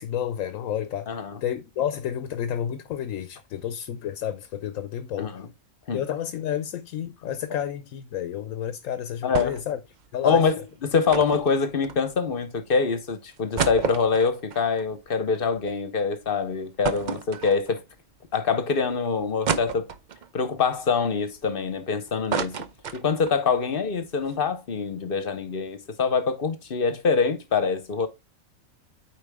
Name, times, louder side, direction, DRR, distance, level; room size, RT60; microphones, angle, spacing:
voice 1, 0.0-1.1 1.4-5.3 5.9-9.8 10.1-10.5, left 9 dB, 80° left, 1.0 m, -30 dB
voice 2, 1.1-1.4 5.2-5.5 5.9-6.0 9.2-9.6 10.2-17.8 18.3-19.9 20.3-22.6 22.9-28.1, left 5 dB, 50° left, 0.9 m, -25 dB
sound 1, 9.3-9.8 10.0-10.1 11.1-12.4 12.9-13.0 13.3-15.8 16.1-16.2 16.8-18.0 18.5-18.6 19.5-20.3 20.8-21.8 22.1-23.4 23.8-23.9 24.1-24.3, right 7 dB, 55° right, 0.5 m, -31 dB
8.3 x 4.6 x 3.5 m
omnidirectional pair, 1.4 m